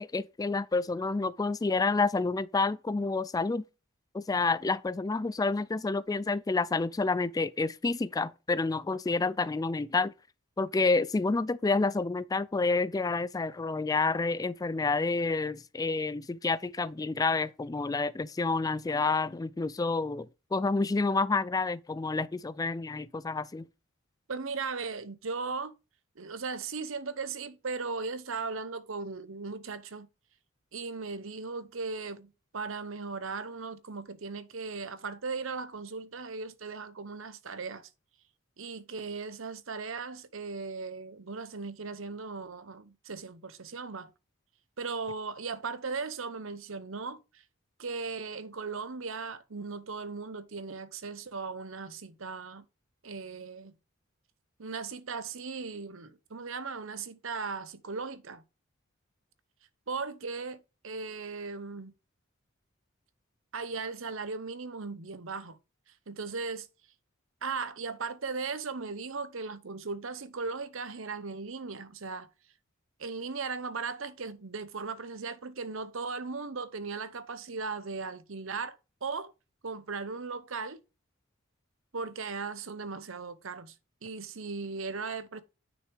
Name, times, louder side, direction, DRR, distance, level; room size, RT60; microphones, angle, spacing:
voice 1, 0.0-3.6 4.1-10.1 10.6-23.7, left 3 dB, 15° left, 0.3 m, -29 dB
voice 2, 24.3-25.7 26.2-30.1 30.7-37.9 38.6-44.1 44.8-47.4 47.8-52.6 53.0-53.7 54.6-58.4 59.9-61.9 63.5-65.6 66.1-66.7 67.4-72.3 73.0-79.3 79.6-80.8 81.9-83.7 84.0-85.4, right 4 dB, 65° right, 0.9 m, -37 dB
9.6 x 6.2 x 3.4 m
head